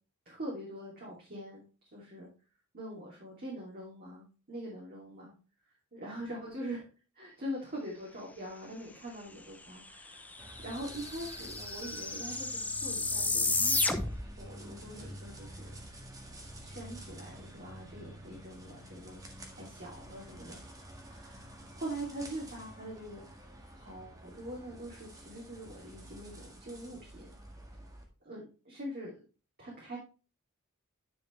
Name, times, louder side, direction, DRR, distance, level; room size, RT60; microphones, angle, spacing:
voice 1, 0.2-2.3 2.7-5.3 5.9-6.9 7.1-14.0 14.4-15.7 16.6-19.2 19.5-20.6 21.1-23.5 23.7-27.3 28.2-29.1 29.6-30.0, right 1 dB, 45° right, -5 dB, 2.9 m, -43 dB
sound 1, 9.9-10.0 10.2-14.4, left 3 dB, 5° left, 0.7 m, -32 dB
sound 2, 10.4-28.0, equal, 15° right, 1.7 m, -49 dB
9.7 x 6.6 x 3.2 m, 0.33 s
head